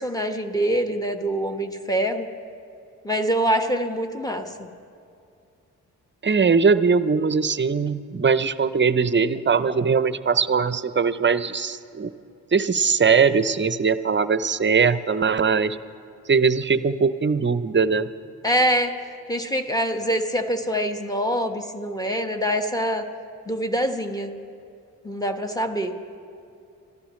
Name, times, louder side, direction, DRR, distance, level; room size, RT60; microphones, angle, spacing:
voice 1, 0.0-2.3 3.0-4.7 18.4-18.9 19.3-23.0 23.5-24.3 25.0-25.9, equal, 10° left, 5 dB, 1.5 m, -24 dB
voice 2, 6.2-12.1 12.5-15.8 16.3-18.1, right 5 dB, 30° right, 14 dB, 0.7 m, -21 dB
26.0 x 13.5 x 3.2 m, 2.5 s
hypercardioid pair, 40°, 38 cm